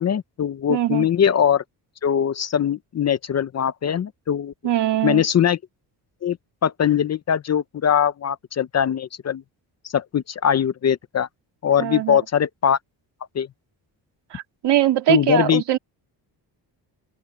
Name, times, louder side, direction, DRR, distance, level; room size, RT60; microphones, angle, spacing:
voice 1, 0.0-1.6 2.0-4.5 5.0-5.6 6.2-6.4 6.6-9.4 9.8-11.3 11.6-12.8 13.3-13.5 15.1-15.6, left 9 dB, 40° left, 0.6 m, -21 dB
voice 2, 0.7-1.1 4.6-5.2 11.8-12.2 14.3-15.8, right 13 dB, 70° right, 2.4 m, -21 dB
cardioid pair, 145°, 43 cm